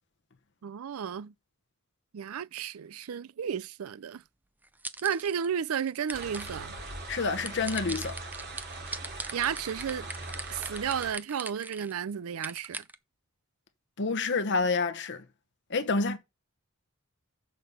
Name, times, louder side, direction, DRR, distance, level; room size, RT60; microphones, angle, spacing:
voice 1, 0.6-1.3 2.1-4.2 5.0-6.7 9.3-10.1 10.5-12.8, right 8 dB, 90° right, 0.4 m, -33 dB
sound 1, 4.6-5.5 5.9-6.6 7.5-11.9 12.4-13.0, right 2 dB, 10° right, 0.5 m, -40 dB
sound 2, 6.1-11.1, right 2 dB, 55° right, 2.7 m, -41 dB
voice 2, 7.1-8.2 14.0-15.2 15.7-16.2, left 4 dB, 60° left, 1.0 m, -28 dB
6.6 x 5.6 x 6.8 m
head